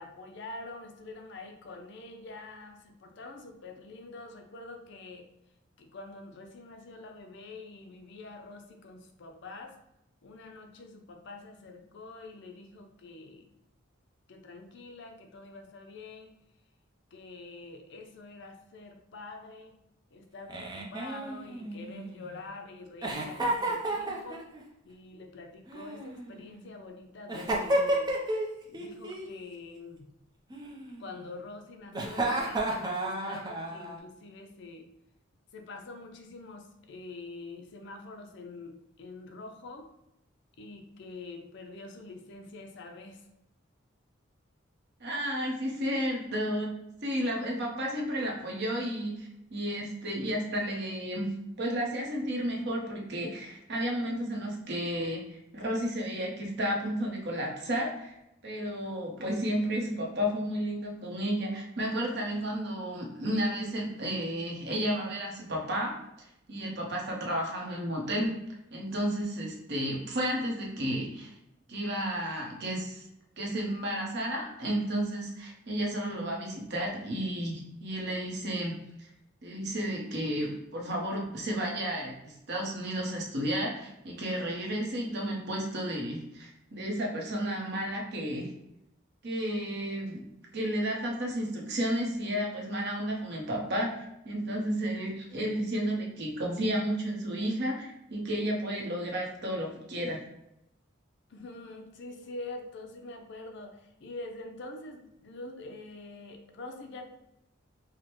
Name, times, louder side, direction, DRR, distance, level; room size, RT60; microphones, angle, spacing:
voice 1, 0.0-5.3 5.8-9.8 10.2-13.5 14.3-16.3 17.1-19.8 20.1-24.5 24.8-28.1 28.7-30.1 31.0-34.9 35.5-39.9 40.6-43.3 101.3-107.1, left 3 dB, 60° left, 4 dB, 0.5 m, -45 dB
Giggle, 20.5-22.3 23.0-24.6 25.7-26.6 27.3-28.5 28.7-29.3 30.5-31.3 31.9-34.0, right 1 dB, 20° right, 0.5 m, -32 dB
voice 2, 45.0-46.7 47.0-58.1 58.4-65.9 66.5-68.3 68.7-71.3 71.7-73.0 73.4-79.1 79.4-88.5 89.2-90.2 90.5-100.2, equal, 60° right, -1 dB, 0.9 m, -32 dB
4.8 x 2.1 x 3.0 m, 0.85 s
head